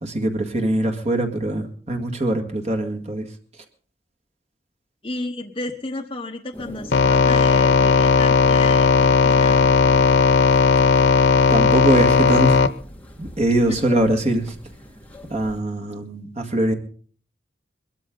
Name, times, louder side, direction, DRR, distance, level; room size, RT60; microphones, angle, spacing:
voice 1, 0.0-3.3 11.5-12.6 13.2-14.5 15.3-16.7, right 1 dB, 40° right, 4 dB, 2.0 m, -22 dB
voice 2, 5.0-9.7 13.7-13.8, left 2 dB, 30° left, 2 dB, 1.0 m, -32 dB
sound 1, 6.5-15.6, equal, 10° left, 1.8 m, -41 dB
sound 2, 6.9-12.7, left 5 dB, 85° left, 0.7 m, -16 dB
21.0 x 13.5 x 3.9 m, 0.43 s
head